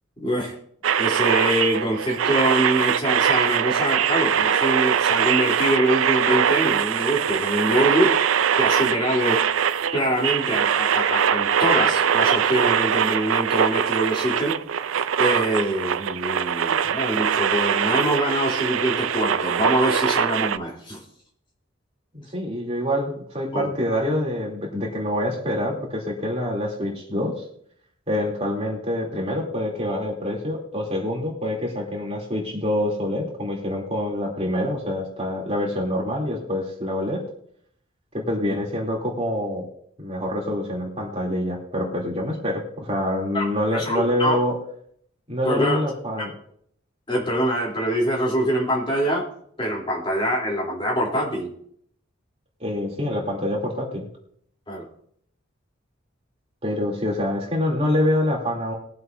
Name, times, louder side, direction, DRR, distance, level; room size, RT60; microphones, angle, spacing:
voice 1, 0.2-0.5 1.0-8.2 8.6-9.4 9.9-14.5 15.2-21.0 23.5-23.7 43.3-43.4 43.7-44.4 45.4-45.8 47.1-49.3 49.6-51.5 54.7-54.9, right 1 dB, 25° left, -3 dB, 3.3 m, -24 dB
sound 1, 0.8-20.6, right 8 dB, 75° right, 0.5 m, -22 dB
voice 2, 22.1-27.4 28.1-37.2 38.1-39.6 40.0-44.5 45.3-46.3 52.6-54.1 56.6-58.7, left 1 dB, 30° right, -2 dB, 3.0 m, -26 dB
21.5 x 7.7 x 2.7 m, 0.66 s
head